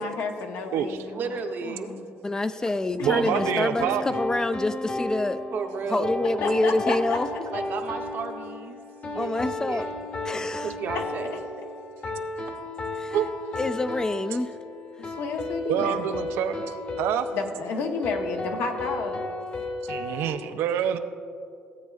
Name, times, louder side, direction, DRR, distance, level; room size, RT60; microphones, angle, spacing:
voice 1, 0.0-1.3 1.6-2.0 6.4-7.2 15.1-16.3 17.3-19.2, left 4 dB, 75° left, 3 dB, 1.0 m, -31 dB
voice 2, 1.1-1.9 5.5-6.2 7.5-9.9 10.6-11.3, right 5 dB, 50° right, 4 dB, 0.8 m, -34 dB
voice 3, 2.2-5.4 5.9-7.3 9.1-9.9 10.2-10.7 13.0-13.2 13.6-14.5, left 2 dB, 15° left, 11 dB, 0.3 m, -27 dB
sound 1, 3.0-20.3, left 2 dB, 35° left, 1.1 m, -34 dB
voice 4, 3.0-4.2 12.0-12.1 13.1-13.3 15.6-16.6 17.0-17.3 19.8-21.0, right 9 dB, 80° right, 8 dB, 0.5 m, -26 dB
15.0 x 8.1 x 2.4 m, 2.5 s
cardioid pair, 115°, 4 cm